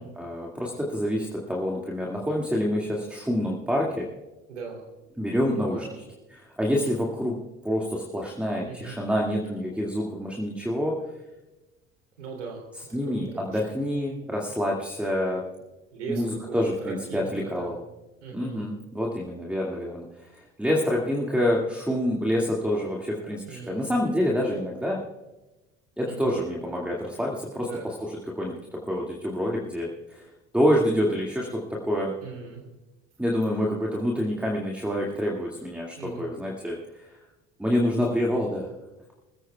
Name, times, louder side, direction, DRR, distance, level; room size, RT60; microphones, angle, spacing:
voice 1, 0.0-4.1 5.2-6.0 6.3-7.4 7.6-11.0 12.7-15.4 16.1-17.8 18.3-25.0 26.0-32.1 33.2-37.2 37.6-38.7, equal, 5° right, -2 dB, 2.1 m, -27 dB
voice 2, 4.5-4.8 5.5-6.0 8.6-8.9 12.2-12.6 12.9-13.0 13.3-13.5 15.9-16.6 16.8-17.7 18.2-18.7 23.4-23.9 26.0-26.3 27.6-27.8 32.2-32.6 36.0-36.3, right 5 dB, 80° right, 1 dB, 3.1 m, -38 dB
22.5 x 15.5 x 2.3 m, 1.1 s
figure-of-eight pair, 55°, 36 cm